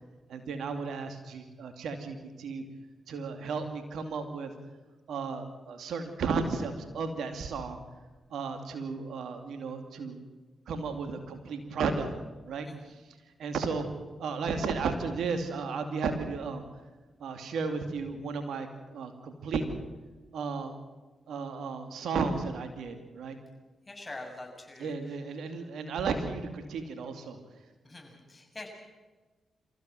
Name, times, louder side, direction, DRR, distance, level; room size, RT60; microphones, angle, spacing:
voice 1, 0.3-2.6 3.1-4.5 5.1-7.8 8.3-10.2 10.7-12.1 12.5-12.7 13.4-13.9 14.2-16.6 17.2-19.7 20.3-20.8 21.3-23.4 24.8-27.4, right 4 dB, 75° right, 7 dB, 2.5 m, -34 dB
voice 2, 12.6-13.0 23.9-25.2 27.8-28.7, left 2 dB, 25° left, 2 dB, 7.3 m, -45 dB
26.5 x 15.5 x 7.7 m, 1.3 s
hypercardioid pair, 40°, 0 cm